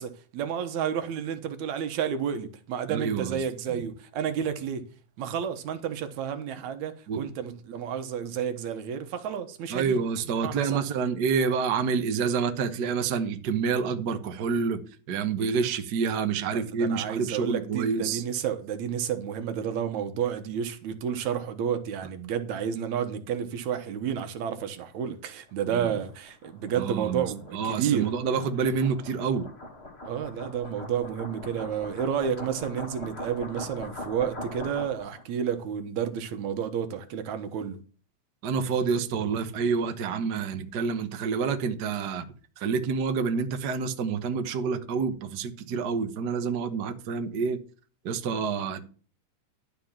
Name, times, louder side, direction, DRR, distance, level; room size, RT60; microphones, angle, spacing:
voice 1, 0.0-4.8 5.2-10.0 10.4-10.8 16.5-28.1 30.1-37.8, right 8 dB, 75° right, 2.4 m, -31 dB
voice 2, 2.9-3.4 3.7-3.8 7.1-7.2 9.7-14.8 15.1-18.2 25.7-25.8 26.8-27.3 27.5-29.5 38.4-42.3 42.6-47.6 48.0-48.8, right 5 dB, 60° right, 1.1 m, -28 dB
sound 1, 25.3-35.2, left 2 dB, 25° left, 1.8 m, -42 dB
12.0 x 5.1 x 7.2 m
omnidirectional pair, 3.4 m